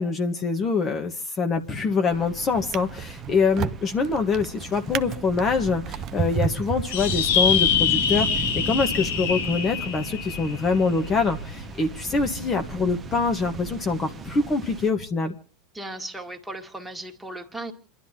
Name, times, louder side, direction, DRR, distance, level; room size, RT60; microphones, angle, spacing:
voice 1, 0.0-15.3, left 4 dB, 30° left, 5 dB, 1.3 m, -25 dB
Drawer open or close, 1.5-2.0 2.5-7.7 8.4-8.6, right 9 dB, 45° right, 0.7 m, -32 dB
sound 1, 2.1-14.9, right 4 dB, 25° right, 1.1 m, -36 dB
sound 2, 6.9-11.7, left 8 dB, 70° left, 1.0 m, -25 dB
voice 2, 15.7-17.7, right 1 dB, 5° right, 3 dB, 1.9 m, -36 dB
29.0 x 11.5 x 2.9 m, 0.41 s
hypercardioid pair, 90°, 0 cm